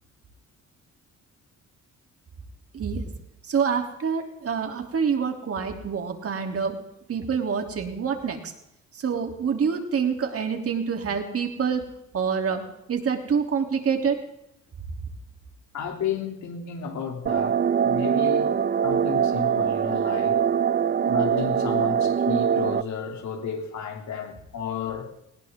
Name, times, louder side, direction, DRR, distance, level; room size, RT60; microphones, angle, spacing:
voice 1, 2.7-3.1 3.4-6.8 7.1-8.5 8.9-11.8 12.1-14.2, right 6 dB, 50° right, 3.3 m, -26 dB
voice 2, 15.7-18.5 18.8-20.4 21.0-25.1, left 7 dB, 65° left, 3.2 m, -32 dB
sound 1, 17.3-22.8, right 8 dB, 35° right, 0.6 m, -23 dB
20.0 x 17.5 x 3.8 m
cardioid pair, 90°, 30 cm